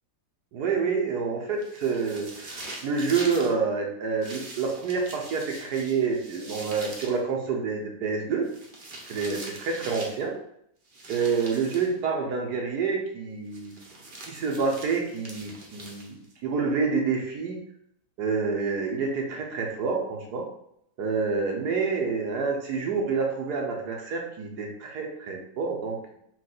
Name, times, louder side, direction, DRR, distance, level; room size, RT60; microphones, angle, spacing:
voice 1, 0.5-8.5 9.1-10.3 11.1-13.8 14.3-17.6 18.2-20.5 21.0-26.2, right 5 dB, 65° right, 0 dB, 1.3 m, -28 dB
sound 1, 1.6-3.5 4.2-7.2 8.4-10.2 10.9-11.9 13.5-16.3, right 2 dB, 85° right, 0.4 m, -42 dB
4.6 x 2.4 x 3.9 m, 0.72 s
omnidirectional pair, 2.1 m